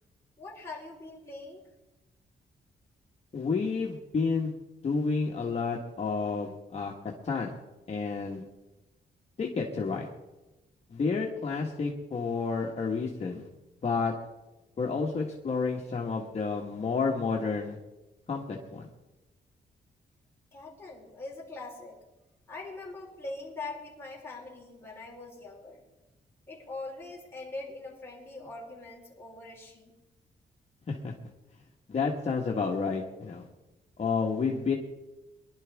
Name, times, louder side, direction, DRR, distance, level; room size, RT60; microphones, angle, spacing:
voice 1, 0.4-1.6 20.5-22.1 22.5-25.8 26.5-30.0, left 2 dB, 15° left, -4 dB, 4.0 m, -42 dB
voice 2, 3.3-4.5 4.8-6.9 7.2-7.5 7.9-8.4 9.4-10.1 10.9-13.5 13.8-14.1 14.8-17.8 18.3-18.9 30.9-31.1 31.9-33.5 34.0-34.7, left 4 dB, 40° left, -1 dB, 1.5 m, -30 dB
24.5 x 11.5 x 3.6 m, 1.1 s
wide cardioid pair, 165°, 18 cm